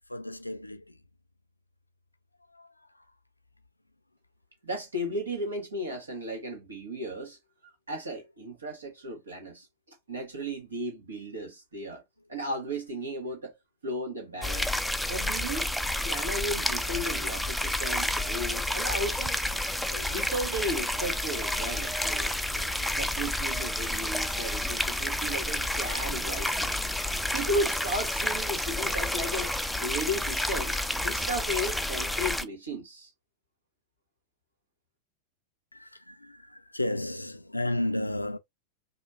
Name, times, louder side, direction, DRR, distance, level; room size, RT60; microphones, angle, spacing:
voice 1, 0.1-1.0 2.5-3.0 14.4-14.5 16.3-16.8 18.1-18.2 19.5-20.5 22.5-23.0 25.6-25.7 35.7-38.4, left 1 dB, 85° left, 0.5 m, -35 dB
voice 2, 4.6-7.4 7.9-12.0 12.3-13.6 13.8-14.8 15.0-15.7 16.0-19.4 19.9-22.3 23.0-26.7 27.3-29.5 29.8-30.8 31.0-33.1, equal, 75° right, 1.9 m, -35 dB
sound 1, 14.4-32.4, left 1 dB, ahead, 0.4 m, -30 dB
5.0 x 2.6 x 2.7 m
figure-of-eight pair, 90°, 0 cm